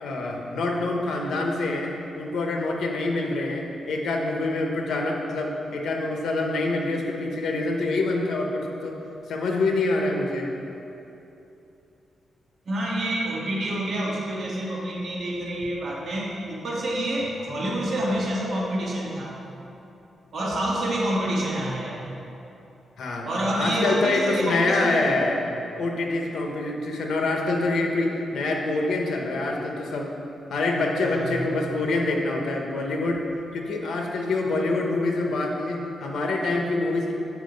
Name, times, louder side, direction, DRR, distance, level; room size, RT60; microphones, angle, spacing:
voice 1, 0.0-9.0 9.3-10.5 23.0-23.3 23.5-25.4 25.8-30.1 30.5-33.2 33.5-37.1, left 2 dB, 75° left, 1 dB, 1.0 m, -26 dB
voice 2, 12.7-19.3 20.3-22.0 23.2-25.0 31.0-31.4, right 1 dB, 50° right, -5 dB, 1.8 m, -27 dB
7.3 x 5.1 x 5.3 m, 2.9 s
cardioid pair, 115°, 0 cm